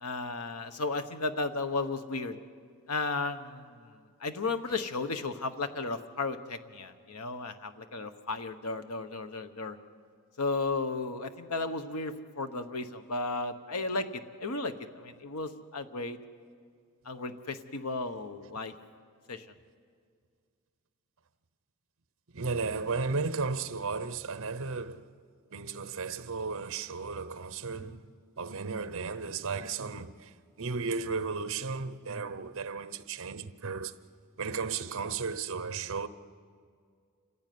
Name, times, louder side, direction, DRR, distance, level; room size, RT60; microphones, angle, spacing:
voice 1, 0.0-2.4 2.9-9.8 10.4-16.2 17.0-18.7 19.3-19.5, left 3 dB, 85° left, 1.2 m, -34 dB
voice 2, 22.3-25.1 25.5-28.0 28.4-33.9 34.4-36.1, right 4 dB, 60° right, 0.9 m, -34 dB
28.0 x 15.5 x 9.4 m
head